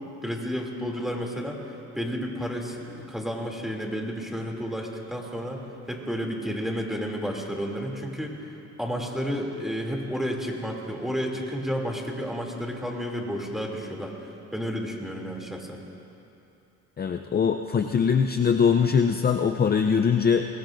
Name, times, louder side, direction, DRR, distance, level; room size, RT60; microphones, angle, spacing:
voice 1, 0.2-5.6 5.9-8.3 8.8-14.2 14.5-15.8, equal, ahead, -1 dB, 2.8 m, -31 dB
voice 2, 17.0-20.5, left 6 dB, 30° left, 6 dB, 0.6 m, -22 dB
25.0 x 21.0 x 2.6 m, 2.9 s
cardioid pair, 90°, 30 cm